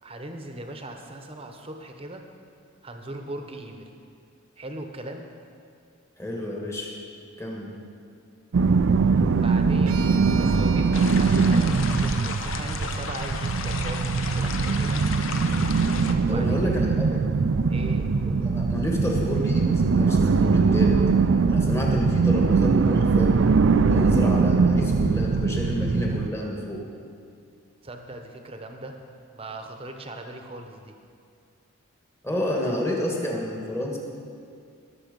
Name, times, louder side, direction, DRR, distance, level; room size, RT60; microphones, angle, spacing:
voice 1, 0.0-2.2 2.8-3.9 4.6-5.3 9.3-10.1 10.3-15.0 16.2-16.7 17.7-18.1 27.8-29.0 29.3-30.9, right 1 dB, 25° right, 5 dB, 0.9 m, -39 dB
voice 2, 6.2-6.9 7.4-7.7 16.3-17.2 18.2-21.0 21.5-23.4 23.8-26.8 32.2-34.0, left 1 dB, 10° left, -1 dB, 1.5 m, -29 dB
sound 1, 8.5-26.3, right 4 dB, 60° right, 0.4 m, -21 dB
sound 2, 9.9-14.0, right 5 dB, 80° right, 1.0 m, -42 dB
sound 3, 10.9-16.1, left 5 dB, 65° left, 0.8 m, -34 dB
20.5 x 7.0 x 5.3 m, 2.3 s
head